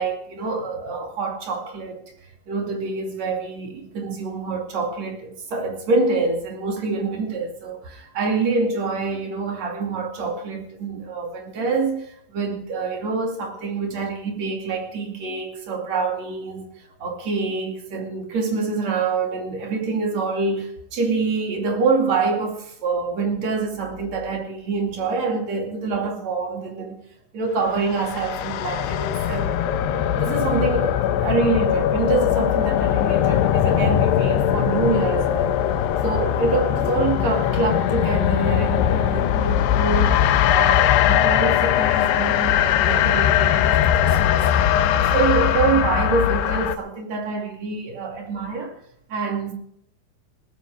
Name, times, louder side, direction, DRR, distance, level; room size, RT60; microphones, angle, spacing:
voice 1, 0.0-2.0 2.5-16.7 17.0-27.0 27.3-29.6 29.9-35.6 36.0-40.2 40.4-44.5 44.9-48.7 49.1-49.5, right 4 dB, 40° right, 3.0 m, -26 dB
sound 1, 27.8-46.8, left 10 dB, 80° left, 2.5 m, -20 dB
19.5 x 14.0 x 3.5 m
omnidirectional pair, 5.7 m